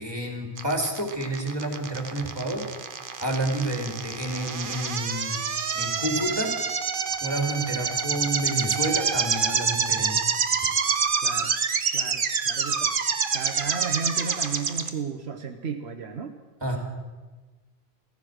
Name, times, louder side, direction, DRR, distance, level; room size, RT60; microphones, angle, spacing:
voice 1, 0.0-2.6 3.2-5.4 5.7-6.5 7.2-10.2 10.9-11.0 16.6-16.8, right 1 dB, 25° right, 2 dB, 3.0 m, -29 dB
sound 1, 0.6-14.9, right 6 dB, 55° right, 1.0 m, -27 dB
voice 2, 11.2-11.5 11.9-12.9 13.3-16.3, right 5 dB, 75° right, 5 dB, 1.2 m, -33 dB
15.5 x 14.5 x 6.4 m, 1.3 s
omnidirectional pair, 1.1 m